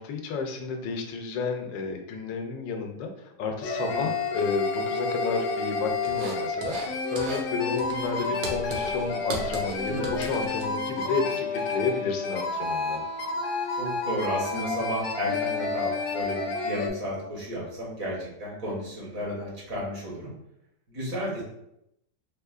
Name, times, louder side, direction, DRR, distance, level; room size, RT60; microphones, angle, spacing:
voice 1, 0.0-13.0, left 4 dB, 90° left, 4 dB, 1.3 m, -31 dB
sound 1, 3.6-16.9, left 3 dB, 70° left, 0.9 m, -30 dB
sound 2, 6.0-6.9 7.2-7.5 7.8-11.0, right 2 dB, 70° right, 1.2 m, -37 dB
voice 2, 13.8-20.3 20.9-21.4, equal, 55° right, -5 dB, 1.5 m, -33 dB
4.1 x 2.7 x 2.3 m, 0.81 s
omnidirectional pair, 1.9 m